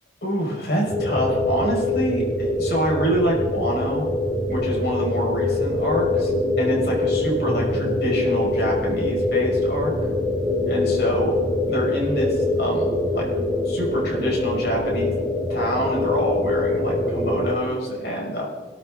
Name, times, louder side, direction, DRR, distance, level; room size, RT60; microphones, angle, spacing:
voice 1, 0.2-4.1 4.5-6.3 6.6-9.9 10.7-11.4 11.7-13.3 13.7-15.1 15.5-18.5, equal, 60° left, -2 dB, 5.4 m, -26 dB
sound 1, 0.9-17.5, left 2 dB, 5° right, 2.6 m, -24 dB
23.0 x 13.0 x 3.9 m, 1.5 s
head